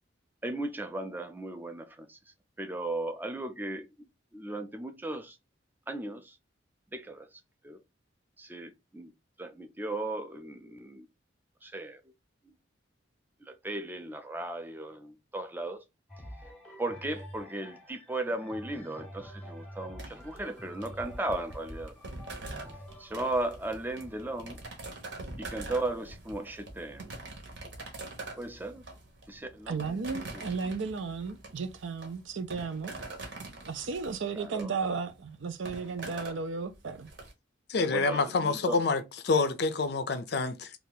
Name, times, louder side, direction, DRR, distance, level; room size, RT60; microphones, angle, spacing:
voice 1, 0.4-2.2 2.6-3.9 4.3-5.4 5.9-6.3 6.9-7.3 7.6-7.8 8.4-9.1 9.4-11.1 11.6-12.0 13.4-15.8 16.8-21.9 23.0-24.6 25.4-27.1 28.4-28.8 29.3-30.4 34.4-34.7 37.9-38.8, right 2 dB, 10° right, 0.4 m, -36 dB
sound 1, 16.1-25.9 26.5-26.6, equal, 5° left, 0.7 m, -48 dB
sound 2, 20.0-37.3, right 2 dB, 60° right, 0.9 m, -44 dB
voice 2, 29.7-32.9 33.6-37.1, right 5 dB, 75° right, 0.5 m, -34 dB
voice 3, 37.7-40.7, left 4 dB, 55° left, 0.4 m, -27 dB
2.7 x 2.4 x 3.8 m
head